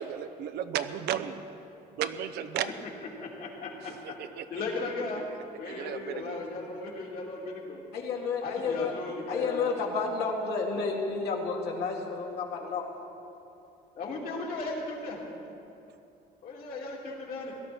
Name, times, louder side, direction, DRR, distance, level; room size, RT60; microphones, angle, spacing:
voice 1, 0.0-1.4 2.0-2.7 3.9-4.4 5.6-6.4, right 10 dB, 75° right, 10 dB, 0.8 m, -34 dB
voice 2, 3.2-4.1 4.5-5.3 5.6-7.8 8.4-9.9 10.7-10.8 14.0-15.2 16.4-17.5, left 3 dB, 60° left, -2 dB, 3.1 m, -36 dB
voice 3, 7.9-9.0 9.3-12.8, left 4 dB, 75° left, 0 dB, 2.3 m, -31 dB
17.5 x 12.0 x 4.4 m, 2.8 s
cardioid pair, 110°, 17 cm